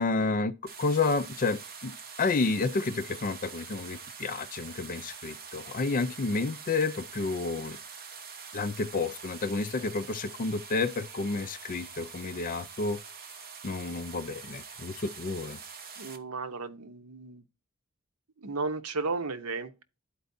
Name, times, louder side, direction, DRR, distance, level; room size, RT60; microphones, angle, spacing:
voice 1, 0.0-7.8 8.5-13.0 13.6-15.6, left 3 dB, 40° left, 0.4 m, -30 dB
sound 1, 0.7-16.2, right 6 dB, 45° right, 1.0 m, -45 dB
voice 2, 16.0-17.4 18.4-19.8, right 3 dB, 90° right, 0.9 m, -34 dB
12.0 x 4.6 x 2.6 m
head